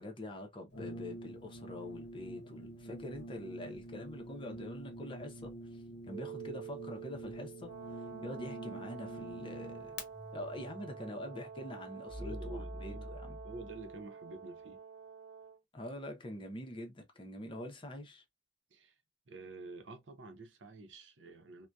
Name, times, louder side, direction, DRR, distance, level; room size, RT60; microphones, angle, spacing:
voice 1, 0.0-9.9 10.3-13.4 15.7-18.2, left 1 dB, 25° left, 0.6 m, -45 dB
Brass instrument, 0.7-10.1, right 1 dB, 65° left, 0.7 m, -47 dB
sound 1, 6.1-14.0, right 3 dB, 10° right, 0.9 m, -48 dB
Brass instrument 2, 7.6-15.6, right 5 dB, 50° right, 1.1 m, -49 dB
voice 2, 11.0-11.4 12.1-13.1 13.4-14.8 18.7-18.9 19.3-21.7, right 2 dB, 90° right, 0.6 m, -49 dB
2.6 x 2.1 x 2.2 m
head